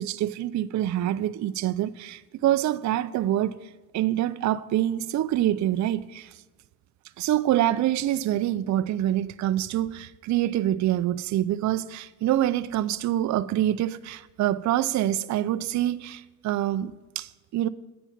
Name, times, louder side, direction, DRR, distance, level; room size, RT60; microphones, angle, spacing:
voice 1, 0.0-3.6 3.9-6.3 7.2-17.7, right 12 dB, 55° right, 0.5 m, -26 dB
8.9 x 5.9 x 5.9 m
cardioid pair, 85°, 36 cm